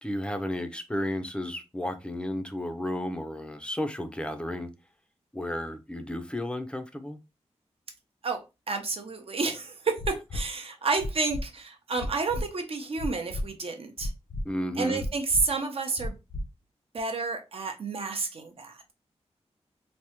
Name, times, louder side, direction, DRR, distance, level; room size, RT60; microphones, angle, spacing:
voice 1, 0.0-4.7 5.3-7.2 14.4-15.1, left 1 dB, 10° left, 0.5 m, -33 dB
voice 2, 8.7-14.1 14.8-16.1 16.9-18.9, right 4 dB, 55° right, 0.7 m, -30 dB
sound 1, 10.0-10.4 11.0-11.4 12.0-12.4 13.0-13.4 14.0-14.4 15.0-15.4 16.0-16.4 17.0-17.1, left 1 dB, 60° left, 0.5 m, -32 dB
3.4 x 2.1 x 2.9 m
wide cardioid pair, 95°, 11 cm